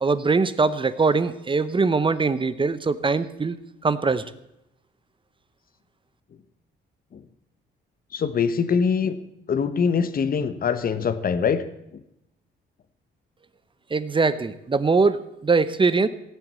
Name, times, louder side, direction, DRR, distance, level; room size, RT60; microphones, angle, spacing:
voice 1, 0.0-3.6 3.8-4.3 13.9-16.1, right 4 dB, 25° right, 14 dB, 0.9 m, -22 dB
voice 2, 8.1-9.2 9.5-11.6, left 6 dB, 45° left, 13 dB, 1.1 m, -23 dB
17.0 x 7.8 x 7.6 m, 0.84 s
cardioid pair, 90°, 20 cm